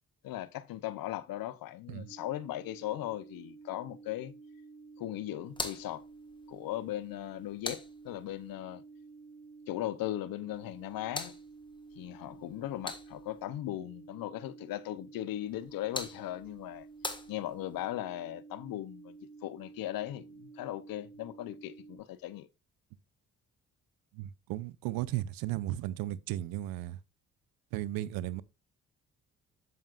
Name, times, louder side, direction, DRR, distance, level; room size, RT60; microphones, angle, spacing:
voice 1, 0.2-4.3 5.0-6.0 6.5-8.8 9.7-11.3 12.0-16.9 17.3-19.2 19.4-22.5, left 14 dB, 80° left, 0.7 m, -38 dB
sound 1, 2.0-22.0, right 4 dB, 60° right, 4.7 m, -52 dB
sound 2, 5.5-8.5 10.5-13.5 15.5-17.9, left 2 dB, 15° left, 1.5 m, -44 dB
voice 2, 24.1-27.0 27.7-28.4, right 14 dB, 90° right, 0.6 m, -35 dB
7.9 x 7.3 x 2.4 m
supercardioid pair, 55°, 34 cm